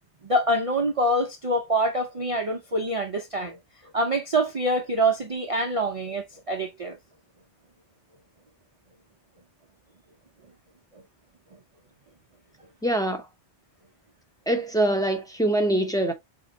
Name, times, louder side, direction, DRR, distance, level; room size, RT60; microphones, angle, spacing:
voice 1, 0.2-3.6 3.9-7.0, right 1 dB, 45° right, 0.5 m, -25 dB
voice 2, 12.8-13.2 14.5-16.1, right 1 dB, 5° left, 0.7 m, -24 dB
5.1 x 2.8 x 2.7 m
omnidirectional pair, 1.2 m